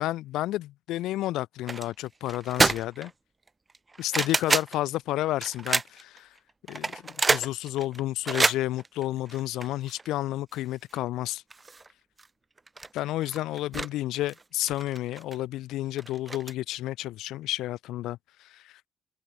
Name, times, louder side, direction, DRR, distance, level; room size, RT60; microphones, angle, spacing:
voice 1, 0.0-3.1 4.0-6.4 6.7-7.0 7.3-11.4 12.9-18.8, left 15 dB, 90° left, 3.0 m, -31 dB
sound 1, 1.7-1.9 2.3-3.1 3.5-4.8 5.4-6.2 6.7-10.1 10.5-10.6 10.9-11.0 11.5-11.9 12.2-12.3 12.6-13.9 14.1-15.3 16.0-16.5, right 3 dB, 20° right, 2.6 m, -28 dB
cardioid pair, 110°, 0 cm